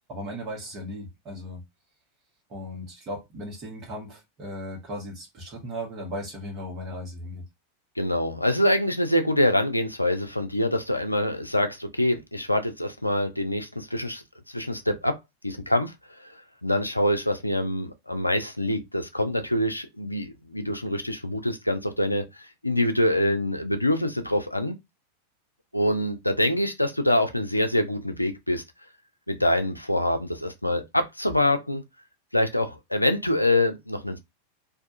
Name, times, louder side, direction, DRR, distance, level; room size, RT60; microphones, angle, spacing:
voice 1, 0.1-1.6 2.5-7.4, equal, 30° right, 1.1 m, -36 dB
voice 2, 8.0-14.2 14.5-15.2 15.4-24.8 25.7-28.6 29.3-31.8 32.3-34.2, left 1 dB, 85° left, 0.3 m, -25 dB
2.5 x 2.3 x 2.4 m
figure-of-eight pair, 90°, 0 cm